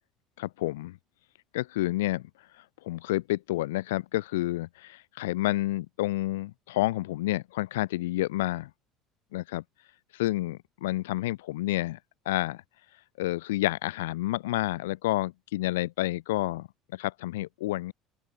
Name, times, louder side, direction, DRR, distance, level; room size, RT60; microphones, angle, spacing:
voice 1, 0.4-1.0 1.5-2.3 2.8-8.7 9.3-9.6 10.1-12.0 12.2-12.6 13.2-17.9, left 17 dB, 90° left, 8.0 m, -29 dB
open air
supercardioid pair, 85°, 0 cm